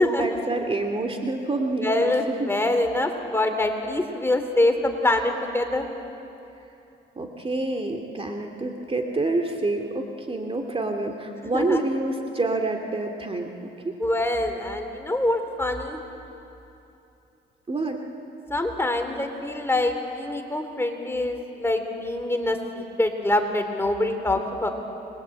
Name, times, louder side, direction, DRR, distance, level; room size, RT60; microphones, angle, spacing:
voice 1, 0.0-2.1 2.4-2.5 7.2-13.7 17.7-18.0, right 2 dB, 30° right, 4 dB, 2.4 m, -27 dB
voice 2, 1.8-5.8 11.5-11.8 14.0-16.0 18.5-24.7, left 1 dB, 10° left, 5 dB, 3.2 m, -25 dB
29.0 x 21.5 x 8.7 m, 2.8 s
cardioid pair, 90°, 20 cm